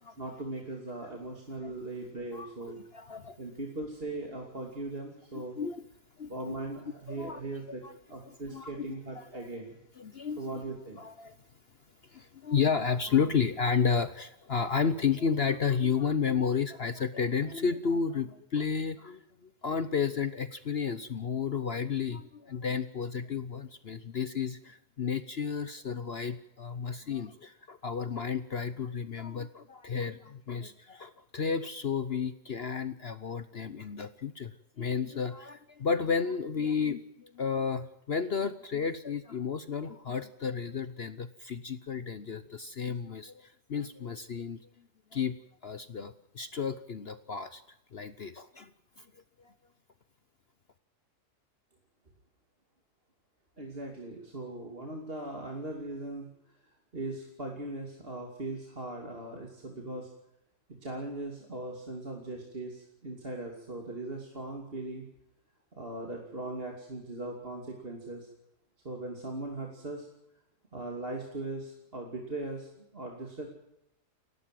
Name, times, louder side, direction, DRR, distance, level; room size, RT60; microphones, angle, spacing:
voice 1, 0.2-2.8 3.4-5.6 6.3-7.8 8.1-9.8 10.4-11.0 53.6-56.3 56.9-60.1 60.8-65.0 65.7-68.3 68.8-70.1 70.7-73.5, right 2 dB, 35° right, 1 dB, 3.0 m, -39 dB
voice 2, 2.7-3.4 5.6-5.8 6.2-6.6 7.1-7.4 7.8-7.9 8.3-9.5 10.0-10.6 11.0-11.4 12.1-19.2 19.6-34.5 34.8-44.6 45.1-45.4 45.6-47.6 47.9-48.7 49.0-49.1, left 6 dB, 45° left, 12 dB, 0.9 m, -32 dB
29.5 x 12.5 x 7.6 m, 0.82 s
omnidirectional pair, 1.7 m